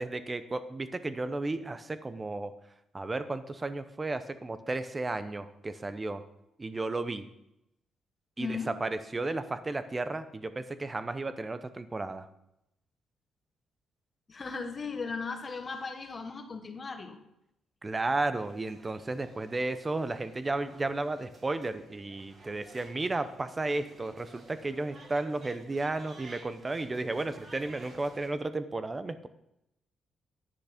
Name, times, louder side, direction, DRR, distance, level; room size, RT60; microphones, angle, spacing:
voice 1, 0.0-2.5 2.9-6.2 6.6-7.3 8.4-12.3 17.8-29.3, right 2 dB, 20° right, 12 dB, 0.6 m, -33 dB
voice 2, 8.4-8.7 14.3-17.2, left 4 dB, 30° left, 6 dB, 1.2 m, -37 dB
sound 1, 18.4-28.3, right 3 dB, 40° right, 1.5 m, -54 dB
10.5 x 6.4 x 5.1 m, 0.83 s
cardioid pair, 140°, 0 cm